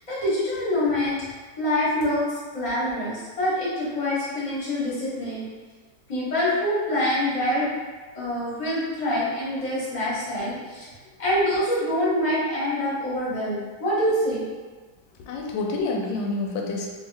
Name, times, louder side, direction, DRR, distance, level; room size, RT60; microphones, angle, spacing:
voice 1, 0.1-1.2 1.6-5.5 6.1-7.7 8.1-10.9 11.2-14.4, left 1 dB, 25° left, -9 dB, 1.0 m, -25 dB
voice 2, 15.2-16.9, left 3 dB, 85° left, 0 dB, 1.3 m, -28 dB
2.9 x 2.7 x 3.3 m, 1.3 s
omnidirectional pair, 2.0 m